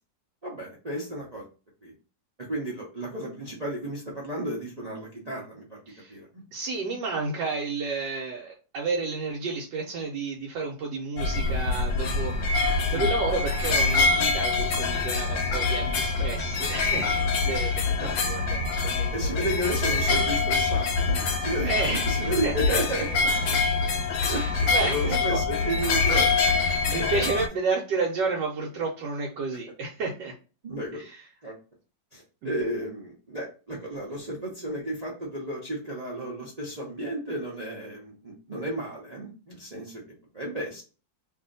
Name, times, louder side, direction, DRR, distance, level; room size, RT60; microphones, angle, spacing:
voice 1, 0.4-1.4 1.8-1.9 2.4-5.8 6.1-6.4 12.9-13.1 18.0-18.2 19.1-23.1 23.4-23.6 24.3-24.4 24.8-26.3 26.9-27.3 30.6-31.0 31.4-31.5 32.1-40.0 40.3-40.8, right 1 dB, 55° right, -4 dB, 0.4 m, -33 dB
voice 2, 6.5-19.5 21.6-22.1 22.4-22.8 24.2-25.4 26.4-30.4 30.9-31.2 32.4-32.5, right 4 dB, 75° right, -1 dB, 1.3 m, -31 dB
sound 1, 11.2-27.5, left 3 dB, 90° left, 1.3 m, -25 dB
2.7 x 2.6 x 3.8 m, 0.35 s
omnidirectional pair, 1.9 m